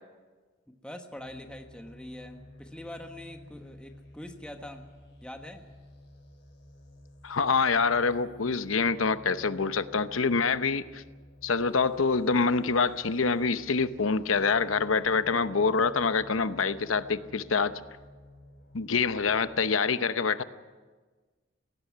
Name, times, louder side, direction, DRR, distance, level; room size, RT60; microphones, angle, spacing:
voice 1, 0.7-4.9 5.2-5.6, left 1 dB, 5° left, 4 dB, 1.2 m, -44 dB
sound 1, 1.2-19.7, left 1 dB, 55° left, 5.3 m, -52 dB
voice 2, 7.2-11.0 11.4-17.7 18.7-20.4, left 4 dB, 85° left, 12 dB, 0.8 m, -26 dB
17.5 x 16.5 x 9.4 m, 1.4 s
head